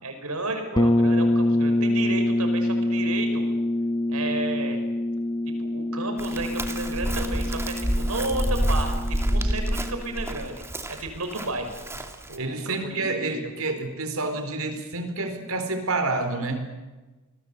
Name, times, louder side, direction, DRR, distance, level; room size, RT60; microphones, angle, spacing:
voice 1, 0.0-3.5 4.1-4.8 5.6-8.9 9.3-10.6 10.9-11.8 12.3-13.4, right 2 dB, 85° right, 6 dB, 5.6 m, -32 dB
sound 1, 0.8-10.4, left 1 dB, 20° left, 0.8 m, -26 dB
Chirp tweet, 6.2-12.4, equal, 10° right, 2.3 m, -28 dB
voice 2, 12.4-16.7, right 3 dB, 70° right, 7 dB, 4.2 m, -28 dB
27.5 x 21.0 x 8.3 m, 1.2 s
head